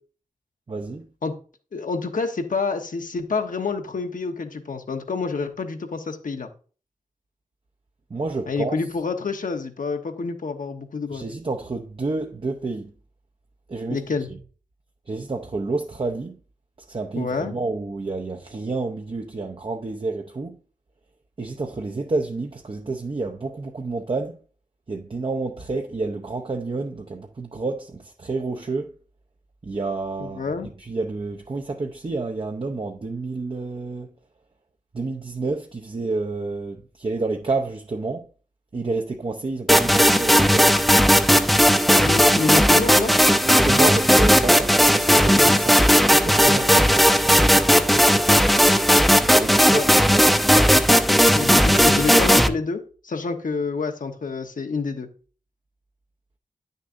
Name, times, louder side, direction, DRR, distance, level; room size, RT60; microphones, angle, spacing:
voice 1, 0.7-1.1 8.1-8.8 11.1-12.9 13.7-14.0 15.1-16.4 16.9-20.6 21.4-24.4 24.9-28.9 29.6-34.1 34.9-38.3 38.7-40.8 43.4-47.5 49.2-50.7, right 3 dB, 40° right, 0.7 m, -29 dB
voice 2, 1.7-6.5 8.5-11.2 13.9-14.3 17.1-17.5 30.2-30.7 42.0-43.1 49.7-49.8 51.3-55.1, left 4 dB, 75° left, 1.1 m, -28 dB
sound 1, 39.7-52.5, equal, ahead, 0.6 m, -16 dB
9.9 x 6.5 x 2.6 m
wide cardioid pair, 100°, 14 cm